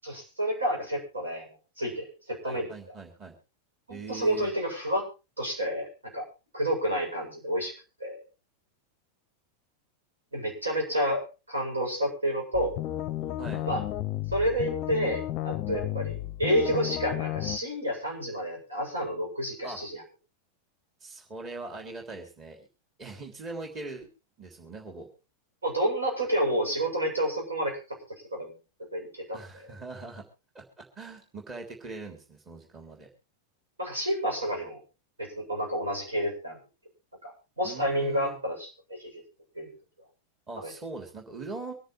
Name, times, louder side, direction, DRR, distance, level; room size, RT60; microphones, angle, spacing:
voice 1, 0.0-1.5 1.8-2.7 3.9-5.0 5.4-5.9 6.1-6.2 6.5-7.7 8.0-8.2 10.3-12.7 13.6-13.8 14.3-20.0 25.6-27.8 28.3-28.5 28.9-29.4 33.8-34.8 35.2-36.6 37.2-37.3 37.6-38.7 39.0-39.1 39.5-39.7 40.6-40.7, equal, 75° right, -1 dB, 7.9 m, -29 dB
voice 2, 2.4-3.3 3.9-4.5 13.4-13.7 19.6-19.8 21.0-22.7 23.0-24.1 24.4-25.1 29.3-30.2 30.5-33.1 37.6-38.4 40.5-41.7, right 3 dB, 25° right, 1 dB, 3.4 m, -41 dB
sound 1, 12.5-17.6, left 14 dB, 40° left, 0.6 m, -33 dB
25.0 x 10.0 x 3.3 m, 0.30 s
figure-of-eight pair, 90°, 0 cm